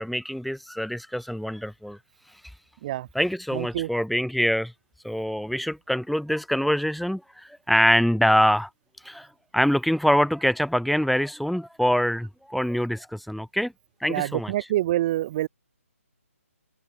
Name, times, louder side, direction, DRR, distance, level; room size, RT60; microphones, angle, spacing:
voice 1, 0.0-2.0 3.1-4.7 5.0-8.7 9.0-9.3 9.5-13.7 14.0-14.5, equal, ahead, 1.3 m, -24 dB
voice 2, 3.5-3.9 14.1-15.5, right 14 dB, 30° right, 1.0 m, -26 dB
figure-of-eight pair, 150°, 8 cm